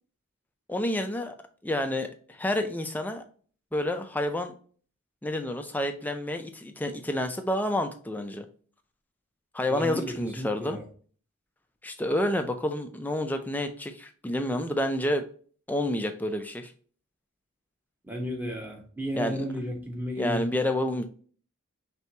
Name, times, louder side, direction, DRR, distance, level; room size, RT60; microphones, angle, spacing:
voice 1, 0.7-1.3 1.6-3.2 3.7-4.5 5.2-8.5 9.5-10.8 11.8-15.3 15.7-16.7 19.1-19.4 20.2-21.0, left 1 dB, 10° left, 6 dB, 0.3 m, -29 dB
voice 2, 9.7-10.8 18.1-20.5, equal, 10° right, 0 dB, 0.9 m, -33 dB
4.5 x 3.4 x 2.7 m, 0.43 s
head